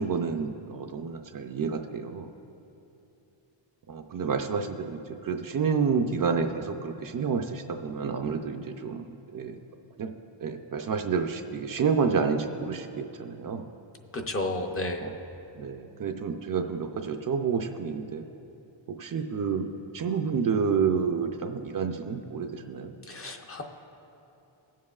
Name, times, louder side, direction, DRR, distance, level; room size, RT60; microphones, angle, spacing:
voice 1, 0.0-2.3 3.9-9.1 9.3-9.5 10.0-10.1 10.4-13.7 15.0-15.2 15.5-18.2 18.9-19.7 19.9-23.0, right 5 dB, 45° right, 5 dB, 0.5 m, -29 dB
voice 2, 14.1-15.1 23.1-23.6, left 2 dB, 30° left, 3 dB, 0.6 m, -32 dB
20.5 x 7.5 x 2.3 m, 2.9 s
wide cardioid pair, 170°, 47 cm